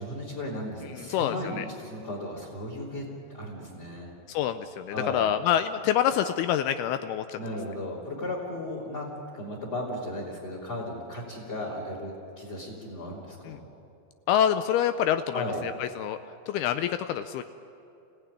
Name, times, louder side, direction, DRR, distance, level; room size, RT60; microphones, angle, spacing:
voice 1, 0.0-4.1 4.9-5.2 7.4-9.1 9.3-13.6 15.3-15.6, left 1 dB, 35° left, -2 dB, 4.0 m, -35 dB
voice 2, 0.8-1.7 4.3-7.4 13.5-13.6 14.3-16.2 16.5-17.4, left 10 dB, 85° left, 10 dB, 2.2 m, -27 dB
29.0 x 16.5 x 10.0 m, 2.8 s
omnidirectional pair, 5.4 m